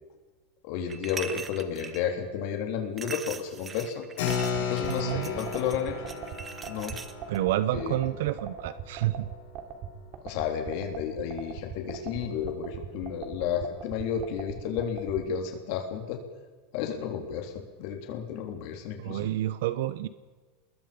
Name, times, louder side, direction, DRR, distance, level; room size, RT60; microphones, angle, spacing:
voice 1, 0.6-4.1 4.6-6.0 6.6-6.9 7.7-8.0 10.2-16.2 16.7-19.3, left 8 dB, 55° left, 3 dB, 3.7 m, -32 dB
sound 1, 0.9-2.0 3.0-7.4, right 6 dB, 20° right, 1.4 m, -41 dB
Keyboard (musical), 4.2-10.2, left 7 dB, 75° left, 7.4 m, -35 dB
sound 2, 4.3-15.2, right 9 dB, 40° right, 3.4 m, -40 dB
voice 2, 4.9-5.3 7.3-9.3 19.0-20.1, right 14 dB, 75° right, 14 dB, 1.0 m, -29 dB
27.5 x 21.5 x 5.4 m, 1.3 s
supercardioid pair, 145°, 0 cm